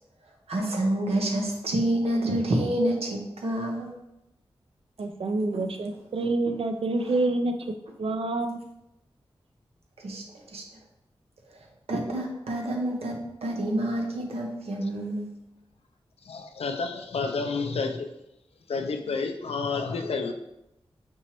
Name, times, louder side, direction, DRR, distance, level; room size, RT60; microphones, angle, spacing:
voice 1, 0.5-3.9 10.0-10.6 11.9-15.3, right 1 dB, 90° right, 1 dB, 0.8 m, -28 dB
voice 2, 5.0-7.5 8.0-8.6, right 2 dB, 65° right, 6 dB, 0.5 m, -27 dB
voice 3, 16.2-18.1 18.7-20.3, left 4 dB, 80° left, 5 dB, 0.4 m, -30 dB
5.3 x 3.0 x 3.0 m, 0.86 s
wide cardioid pair, 60°, 10 cm